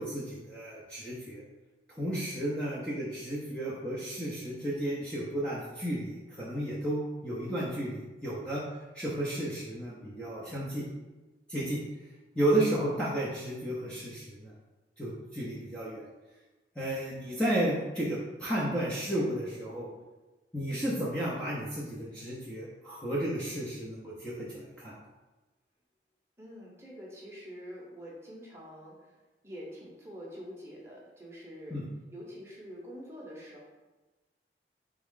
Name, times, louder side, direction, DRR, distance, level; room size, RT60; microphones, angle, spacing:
voice 1, 0.0-1.4 1.9-8.6 8.9-10.8 11.5-11.8 12.3-14.5 15.0-16.0 16.8-19.9 20.5-24.9 31.7-31.8, right 1 dB, 5° left, -8 dB, 0.6 m, -33 dB
voice 2, 26.4-29.0 29.4-31.8 32.1-33.7, equal, 15° right, -4 dB, 0.8 m, -45 dB
3.6 x 3.5 x 3.7 m, 1.2 s
head